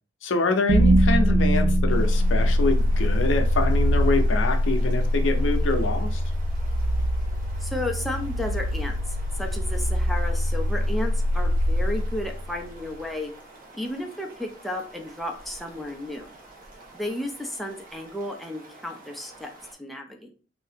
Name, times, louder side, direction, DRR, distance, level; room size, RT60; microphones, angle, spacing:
voice 1, 0.2-6.2, left 3 dB, 75° left, 0.5 m, -26 dB
sound 1, 0.7-12.8, equal, 80° right, 0.3 m, -23 dB
sound 2, 1.9-19.7, right 2 dB, 50° right, 1.0 m, -49 dB
voice 2, 7.6-13.3 13.7-16.3 16.9-19.5 19.8-20.3, left 1 dB, ahead, 0.4 m, -33 dB
2.7 x 2.6 x 3.4 m
head